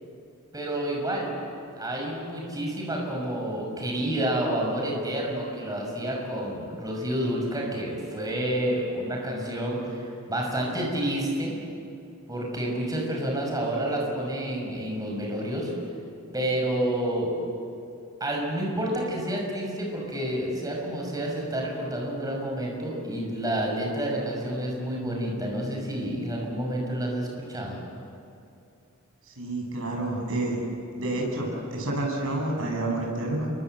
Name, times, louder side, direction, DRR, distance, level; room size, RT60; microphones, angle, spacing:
voice 1, 0.5-1.3 1.7-11.5 12.3-15.7 16.3-17.3 18.2-27.8, right 1 dB, 15° right, -1 dB, 6.1 m, -29 dB
voice 2, 29.3-30.6 31.0-33.5, right 2 dB, 65° right, 0 dB, 7.3 m, -29 dB
28.5 x 23.5 x 7.8 m, 2.6 s
head